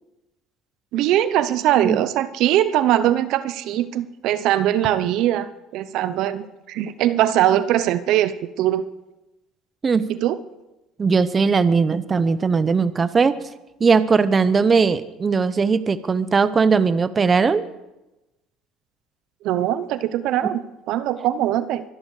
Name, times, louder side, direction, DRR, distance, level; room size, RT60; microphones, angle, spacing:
voice 1, 0.9-8.8 10.1-10.4 19.4-21.8, right 12 dB, 65° right, 14 dB, 0.8 m, -21 dB
voice 2, 11.0-13.3 13.8-17.6, right 5 dB, 25° right, 14 dB, 0.8 m, -19 dB
24.0 x 11.0 x 4.9 m, 0.98 s
supercardioid pair, 105°, 0 cm